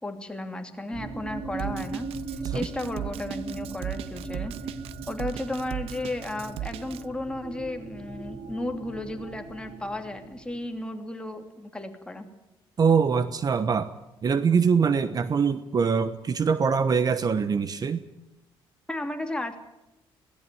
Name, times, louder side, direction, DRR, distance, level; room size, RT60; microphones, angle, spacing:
voice 1, 0.0-4.7 5.1-12.3 18.9-19.6, left 1 dB, 10° left, 4 dB, 2.9 m, -34 dB
sound 1, 0.9-10.7, right 3 dB, 60° right, 5.3 m, -39 dB
Drum kit, 1.6-7.0, right 14 dB, 85° right, 0.8 m, -36 dB
voice 2, 12.8-13.9 14.2-18.0, right 6 dB, 40° right, 13 dB, 1.1 m, -23 dB
21.0 x 17.5 x 9.3 m, 0.92 s
cardioid pair, 105°, 10 cm